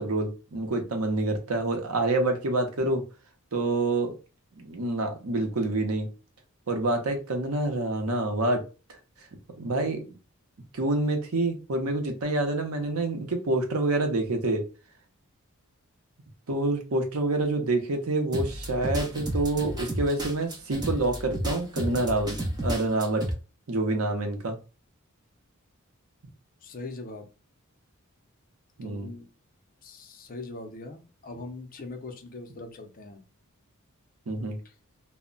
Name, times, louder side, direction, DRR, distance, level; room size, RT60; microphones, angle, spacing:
voice 1, 0.0-3.0 3.5-4.1 4.6-6.1 6.7-8.6 9.6-10.0 10.7-14.6 16.5-23.3 23.7-24.6 28.8-29.1 34.3-34.6, right 2 dB, 75° right, 0.7 m, -27 dB
sound 1, 18.3-23.3, right 1 dB, 20° right, 0.5 m, -32 dB
voice 2, 26.6-27.3 28.8-29.3 29.8-33.2 34.6-34.7, left 2 dB, 40° left, 0.5 m, -41 dB
2.1 x 2.1 x 3.7 m
head